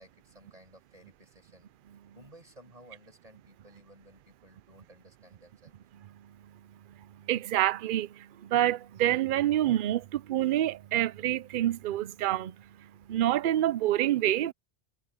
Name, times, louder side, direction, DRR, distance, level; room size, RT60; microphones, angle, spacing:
voice 1, 0.0-1.7 2.1-5.7, right 1 dB, 35° right, 6.1 m, -56 dB
voice 2, 7.2-14.5, right 13 dB, 60° right, 0.7 m, -27 dB
omnidirectional pair, 1.1 m